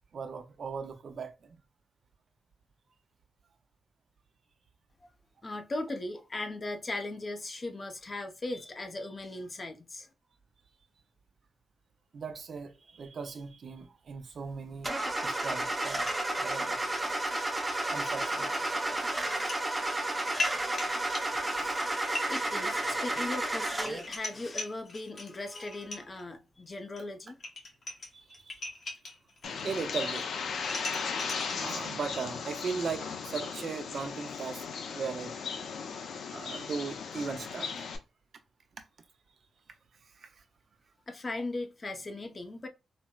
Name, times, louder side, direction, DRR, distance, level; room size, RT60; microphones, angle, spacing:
voice 1, 0.1-1.6 12.1-14.9 15.2-16.1 16.4-16.8 17.9-19.6 20.2-20.3 21.1-21.8 28.1-28.6 29.6-30.2 31.6-34.6 34.9-35.3 36.3-37.9 40.0-40.4, right 5 dB, 55° right, 0.6 m, -38 dB
voice 2, 5.4-10.1 22.3-27.4 41.1-42.7, left 2 dB, 35° left, 0.6 m, -38 dB
Car / Engine starting, 14.8-24.1, right 1 dB, 15° right, 0.7 m, -32 dB
sound 1, 16.0-17.2 17.6-17.7 18.1-18.2 19.2-19.6 20.0-26.2 27.0-27.1 27.3-29.7 30.0-31.9, left 2 dB, 50° left, 0.9 m, -40 dB
Bird, 29.4-38.0, left 5 dB, 80° left, 0.6 m, -37 dB
4.1 x 2.1 x 2.3 m
cardioid pair, 100°, 0 cm